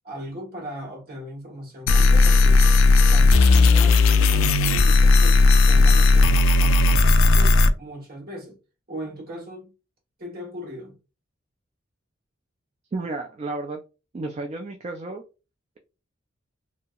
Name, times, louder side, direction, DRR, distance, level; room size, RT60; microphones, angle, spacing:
voice 1, 0.0-2.6 3.1-8.6 8.9-9.7 10.2-11.0, equal, 45° right, 1.3 m, -38 dB
sound 1, 1.9-7.7, left 3 dB, 70° left, 0.3 m, -15 dB
voice 2, 12.9-13.8 14.1-15.2, right 2 dB, 30° right, 0.3 m, -32 dB
2.8 x 2.7 x 2.3 m
head